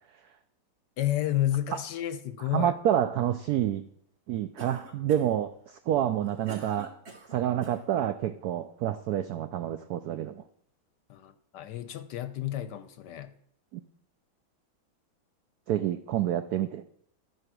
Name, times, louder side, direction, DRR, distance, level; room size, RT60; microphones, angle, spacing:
voice 1, 1.0-2.7 6.2-6.3 11.1-13.3, left 13 dB, 70° left, 1.1 m, -31 dB
voice 2, 2.5-3.9 4.3-6.9 7.3-10.4 13.7-13.8 15.7-16.8, right 11 dB, 80° right, 0.8 m, -28 dB
Cough, 4.6-5.4 6.0-7.8, right 3 dB, 35° right, 1.4 m, -47 dB
13.0 x 4.7 x 6.1 m
omnidirectional pair, 2.2 m